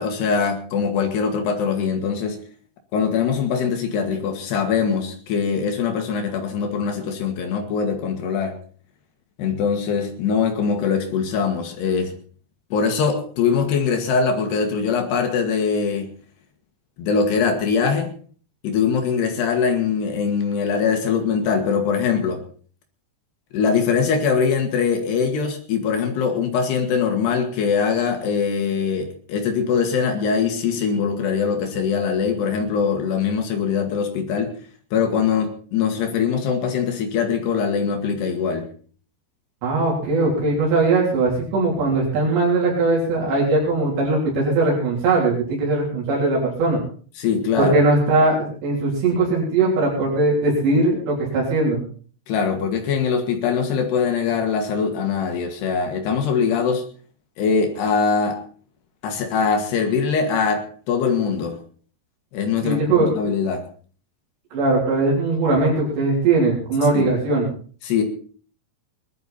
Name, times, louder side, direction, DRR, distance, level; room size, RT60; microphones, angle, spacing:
voice 1, 0.0-2.4 2.9-8.6 9.4-12.1 12.7-16.1 17.0-18.1 18.6-22.4 23.5-34.5 34.9-38.7 47.2-47.7 52.3-56.8 57.4-58.4 59.0-61.6 62.3-63.6 66.9-67.1 67.8-68.0, left 6 dB, 75° left, 5 dB, 3.7 m, -22 dB
voice 2, 39.6-46.8 47.6-51.8 62.6-63.1 64.5-67.5, right 3 dB, 90° right, -4 dB, 5.8 m, -20 dB
21.0 x 11.5 x 4.2 m, 0.44 s
omnidirectional pair, 4.8 m